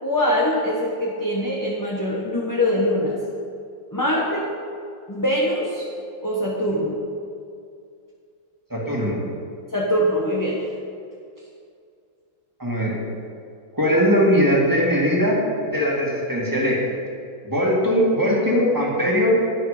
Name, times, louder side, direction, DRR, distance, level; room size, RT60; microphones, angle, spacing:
voice 1, 0.0-3.2 3.9-4.5 5.1-5.8 6.2-7.0 9.7-10.6, equal, 15° left, -5 dB, 1.0 m, -23 dB
voice 2, 8.7-9.2 12.6-13.0 13.7-15.4 15.6-16.8 17.4-19.4, equal, 10° right, -4 dB, 2.2 m, -20 dB
11.0 x 10.0 x 5.1 m, 2.3 s
omnidirectional pair, 2.2 m